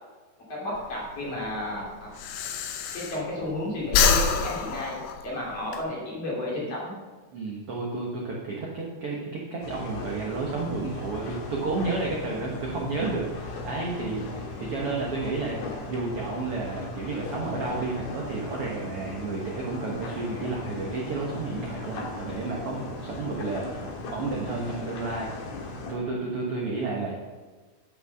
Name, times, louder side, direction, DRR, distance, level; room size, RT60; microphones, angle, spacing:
voice 1, 0.5-2.1 2.9-6.9, left 1 dB, 40° left, -5 dB, 3.6 m, -32 dB
Breathing, 0.7-3.5 3.8-5.8, left 5 dB, 75° left, 2.4 m, -26 dB
voice 2, 7.3-15.6 15.9-25.3 25.9-27.1, right 3 dB, 80° right, -3 dB, 1.3 m, -31 dB
sound 1, 9.6-25.9, left 3 dB, 55° left, 2.4 m, -37 dB
10.0 x 5.8 x 6.6 m, 1.3 s
omnidirectional pair, 4.6 m